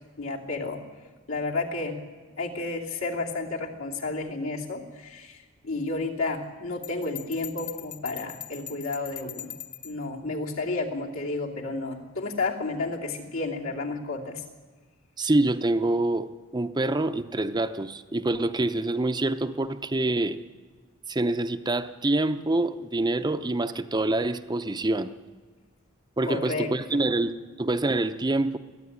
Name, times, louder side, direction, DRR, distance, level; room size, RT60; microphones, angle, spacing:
voice 1, 0.2-0.8 1.3-2.0 2.4-9.5 9.8-14.4 26.2-27.0, left 3 dB, 75° left, -1 dB, 2.9 m, -31 dB
Bell, 6.8-10.0, left 12 dB, 40° left, 1.1 m, -41 dB
voice 2, 15.2-16.3 16.5-20.4 21.1-25.1 26.2-28.6, right 2 dB, 20° right, 9 dB, 0.6 m, -26 dB
22.0 x 15.0 x 9.9 m, 1.4 s
head